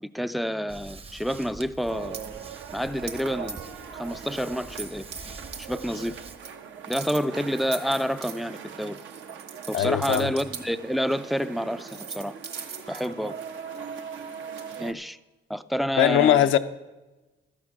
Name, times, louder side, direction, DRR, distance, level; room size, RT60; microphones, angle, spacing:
voice 1, 0.0-2.2 2.7-3.6 3.9-5.1 5.6-6.2 6.9-9.0 9.7-12.3 12.9-13.3 14.8-15.2 15.5-16.5, equal, ahead, 0.4 m, -28 dB
sound 1, 0.7-6.4, right 3 dB, 30° right, 0.8 m, -45 dB
sound 2, 1.8-2.3 3.1-3.2 3.5-3.8 4.2-4.3 4.8-5.2 5.5-5.7 6.0-6.5 6.9-10.6 11.4-11.5 11.8-14.8, right 6 dB, 55° right, 1.6 m, -40 dB
sound 3, 1.9-14.9, right 7 dB, 75° right, 0.9 m, -41 dB
voice 2, 9.7-10.3 16.0-16.6, left 11 dB, 80° left, 0.6 m, -20 dB
12.5 x 8.7 x 5.8 m
cardioid pair, 90°, 20 cm